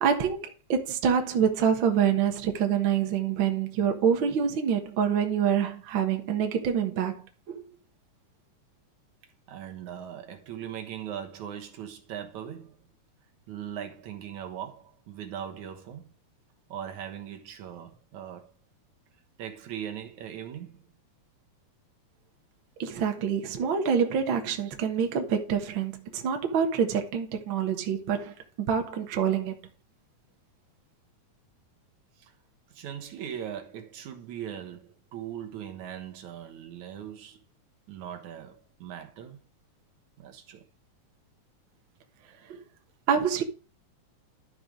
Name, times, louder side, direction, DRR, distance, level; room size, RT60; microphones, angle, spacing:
voice 1, 0.0-7.6 22.8-28.3 28.7-29.6 42.5-42.6 43.1-43.4, right 7 dB, 50° right, 1.7 m, -26 dB
voice 2, 9.5-12.8 13.5-16.1 16.7-18.5 19.4-20.8 32.2-32.3 32.7-37.4 37.9-39.4 40.2-40.6, right 9 dB, 70° right, 2.5 m, -40 dB
12.0 x 4.9 x 5.0 m
omnidirectional pair, 3.6 m